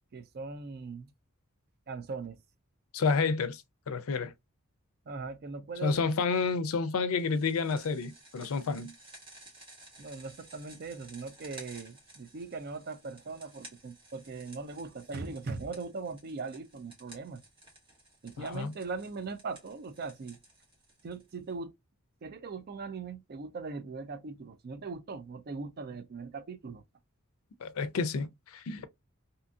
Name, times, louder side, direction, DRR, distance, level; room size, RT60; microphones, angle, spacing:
voice 1, 0.1-1.1 1.9-2.4 5.1-6.2 10.0-17.4 18.2-20.4 21.0-21.7 22.2-26.8, right 4 dB, 45° right, 0.4 m, -40 dB
voice 2, 2.9-4.3 5.8-8.9 18.4-18.7 27.6-28.9, left 4 dB, 70° left, 0.4 m, -30 dB
sound 1, 7.2-21.5, right 2 dB, 25° right, 1.1 m, -55 dB
2.7 x 2.5 x 2.3 m
head